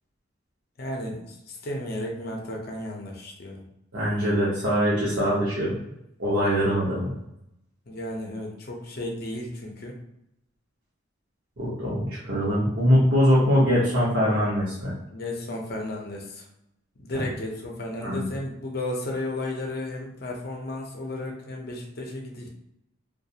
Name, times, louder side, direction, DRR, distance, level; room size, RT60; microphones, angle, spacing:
voice 1, 0.8-3.6 7.9-10.0 15.1-16.4 17.0-22.5, left 1 dB, 50° left, 0 dB, 0.6 m, -33 dB
voice 2, 3.9-5.8 6.2-7.1 11.6-14.9 18.0-18.3, equal, 60° right, -8 dB, 0.8 m, -22 dB
2.4 x 2.2 x 2.7 m, 0.82 s
head